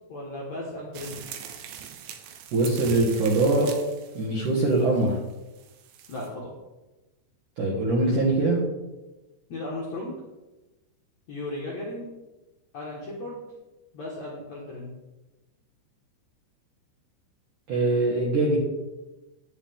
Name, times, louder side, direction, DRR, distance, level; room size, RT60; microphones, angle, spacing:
voice 1, 0.1-1.2 6.1-6.5 9.5-10.1 11.3-12.1 12.7-13.4 13.9-14.9, left 2 dB, 65° left, -4 dB, 1.7 m, -35 dB
sound 1, 0.9-6.3, right 8 dB, 85° right, 3.3 m, -41 dB
voice 2, 2.5-3.7 4.1-5.2 7.6-8.6 17.7-18.6, right 2 dB, 60° right, -4 dB, 2.3 m, -22 dB
10.0 x 9.6 x 3.6 m, 1.1 s
omnidirectional pair, 5.4 m